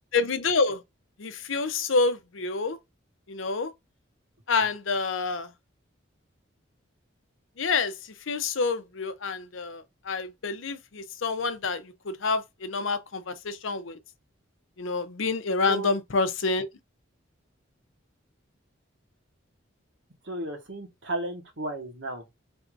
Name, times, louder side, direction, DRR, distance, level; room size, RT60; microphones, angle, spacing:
voice 1, 0.1-0.8 1.2-2.8 3.3-3.7 4.5-5.5 7.6-7.9 8.3-14.0 14.8-16.7, left 4 dB, 75° left, 0.7 m, -28 dB
voice 2, 20.2-22.2, right 1 dB, 65° right, 1.3 m, -34 dB
3.5 x 2.6 x 4.5 m
head